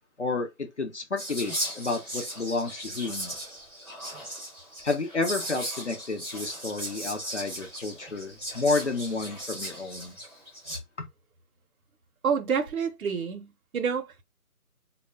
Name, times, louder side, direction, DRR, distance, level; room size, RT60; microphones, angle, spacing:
voice 1, 0.2-3.3 4.8-10.2 10.7-11.1, left 3 dB, 50° left, 0.7 m, -31 dB
Whispering, 1.2-10.8, right 1 dB, 15° left, 1.1 m, -37 dB
voice 2, 12.2-14.2, right 6 dB, 70° right, 0.6 m, -28 dB
2.1 x 2.1 x 3.4 m
figure-of-eight pair, 175°, 45 cm